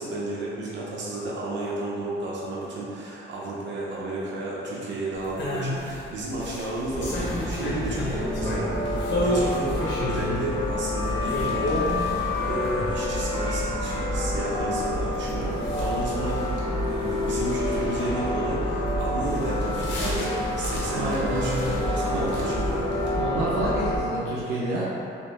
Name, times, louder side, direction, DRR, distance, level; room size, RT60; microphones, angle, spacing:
voice 1, 0.0-8.7 9.2-11.8 12.2-22.9, right 2 dB, 65° right, -6 dB, 1.0 m, -32 dB
sound 1, 5.1-23.1, left 1 dB, 65° left, 1.0 m, -33 dB
sound 2, 6.9-24.0, left 1 dB, 25° left, 0.9 m, -28 dB
voice 2, 20.9-21.6 22.1-22.2 23.2-24.8, right 2 dB, 85° right, -9 dB, 0.7 m, -28 dB
3.3 x 3.1 x 3.2 m, 2.8 s
cardioid pair, 90°, 20 cm